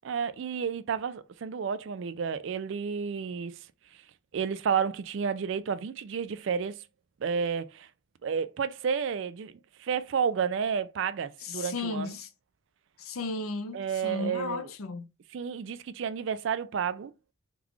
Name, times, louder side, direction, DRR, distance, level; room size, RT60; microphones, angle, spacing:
voice 1, 0.0-3.6 4.3-6.8 7.2-7.9 8.2-12.2 13.7-14.7 15.3-17.1, right 6 dB, 60° right, 0.3 m, -31 dB
voice 2, 11.4-12.3 13.0-15.1, left 3 dB, 85° left, 0.6 m, -35 dB
3.7 x 2.4 x 3.0 m
head